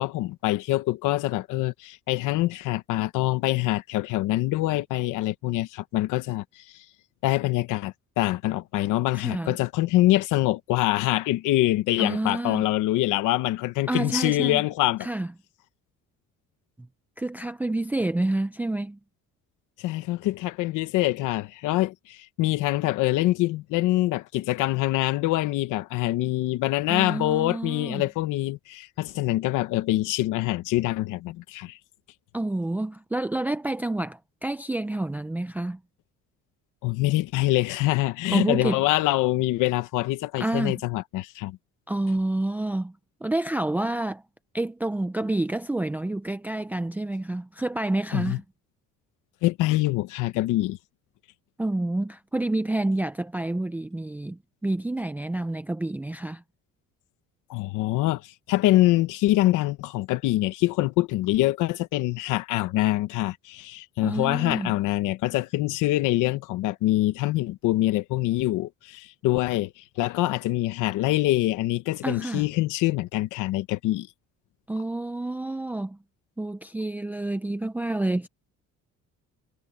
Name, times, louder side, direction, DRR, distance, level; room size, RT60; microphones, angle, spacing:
voice 1, 0.0-6.8 7.2-15.1 19.8-31.8 36.8-41.6 48.1-48.4 49.4-50.8 57.5-74.1, left 17 dB, 85° left, 1.1 m, -25 dB
voice 2, 9.1-9.6 12.0-12.7 13.9-14.6 15.0-15.3 17.2-19.0 26.9-28.0 32.3-35.8 38.3-38.8 40.4-40.7 41.9-42.9 43.2-44.2 44.5-48.4 51.6-56.4 64.0-64.7 72.0-72.5 74.7-76.0 76.4-78.3, right 2 dB, 5° right, 0.5 m, -28 dB
cardioid pair, 145°, 30 cm